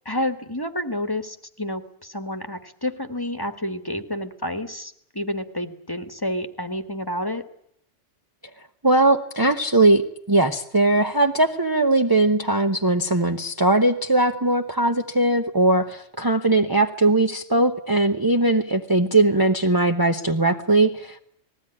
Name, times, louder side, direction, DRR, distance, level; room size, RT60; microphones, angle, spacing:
voice 1, 0.0-7.4, left 1 dB, 20° left, 7 dB, 1.5 m, -29 dB
voice 2, 8.8-10.0 10.3-21.2, right 2 dB, 20° right, 4 dB, 0.9 m, -20 dB
20.0 x 16.0 x 9.9 m, 0.69 s
omnidirectional pair, 1.3 m